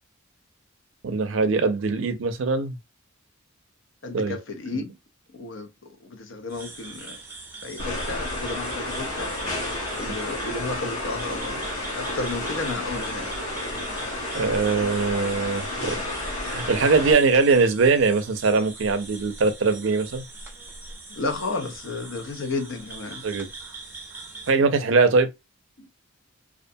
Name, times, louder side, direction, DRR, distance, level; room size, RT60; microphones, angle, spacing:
voice 1, 1.0-2.8 4.1-4.4 4.7-4.8 14.3-16.0 16.5-20.2 23.2-23.5 24.5-25.3, right 4 dB, 65° right, 0.4 m, -21 dB
voice 2, 4.0-4.9 5.3-7.2 7.6-9.3 10.0-11.7 11.9-13.3 21.1-23.2 25.8-25.9, left 3 dB, 65° left, 0.6 m, -32 dB
sound 1, 6.5-24.5, right 3 dB, 10° right, 0.6 m, -42 dB
sound 2, 7.8-17.1, left 2 dB, 85° left, 1.0 m, -31 dB
2.4 x 2.1 x 2.6 m
head